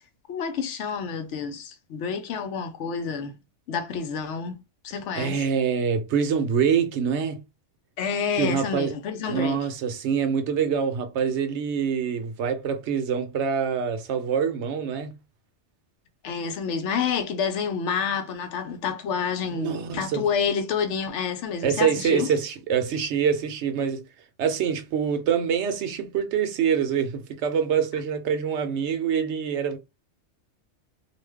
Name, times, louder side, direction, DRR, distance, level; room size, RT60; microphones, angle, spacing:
voice 1, 0.3-3.3 3.7-4.6 4.8-5.4 8.0-9.7 16.2-22.3, left 6 dB, 75° left, 0.9 m, -28 dB
voice 2, 5.1-7.4 8.4-8.9 9.3-15.1 19.5-20.2 21.6-24.0 24.4-29.8, right 7 dB, 70° right, 0.9 m, -25 dB
2.5 x 2.1 x 3.4 m
omnidirectional pair, 1.2 m